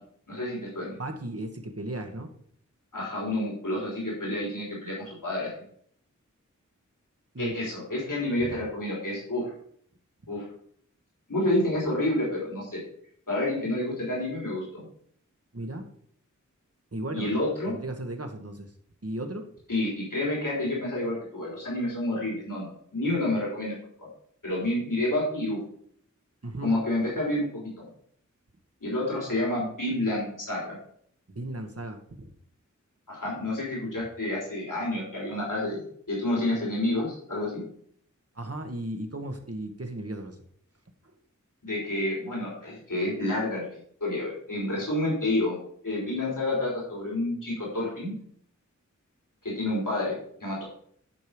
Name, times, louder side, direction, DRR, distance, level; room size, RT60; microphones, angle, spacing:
voice 1, 0.3-1.0 2.9-5.5 7.4-9.4 10.3-10.4 11.3-12.8 13.3-14.8 17.1-17.7 19.7-23.7 24.4-25.6 26.6-27.7 28.8-30.8 33.1-37.6 41.6-45.6 45.8-48.2 49.4-50.6, left 1 dB, 90° left, -5 dB, 3.6 m, -29 dB
voice 2, 1.0-2.3 7.3-7.5 8.4-8.5 15.5-15.9 16.9-17.3 17.7-18.7 19.0-19.5 26.4-26.7 31.3-32.0 38.3-40.4, right 1 dB, 50° right, 5 dB, 1.4 m, -35 dB
10.5 x 4.7 x 5.0 m, 0.62 s
wide cardioid pair, 45°, 31 cm